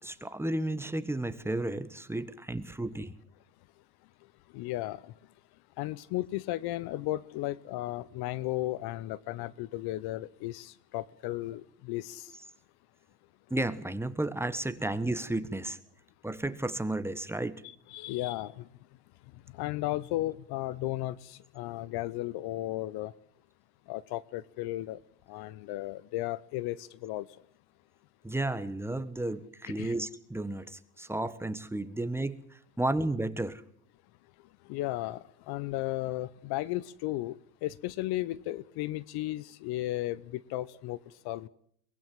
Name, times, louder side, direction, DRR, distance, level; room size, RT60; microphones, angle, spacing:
voice 1, 0.0-3.1 13.5-15.8 16.2-17.6 28.2-33.6, right 1 dB, 5° right, 1.3 m, -33 dB
voice 2, 4.5-5.1 5.8-12.2 17.6-18.5 19.6-23.1 23.9-25.0 25.3-27.3 29.8-29.9 34.7-37.3 37.6-41.0 41.2-41.5, left 16 dB, 50° left, 0.9 m, -34 dB
23.0 x 19.5 x 7.7 m
supercardioid pair, 105°, 49 cm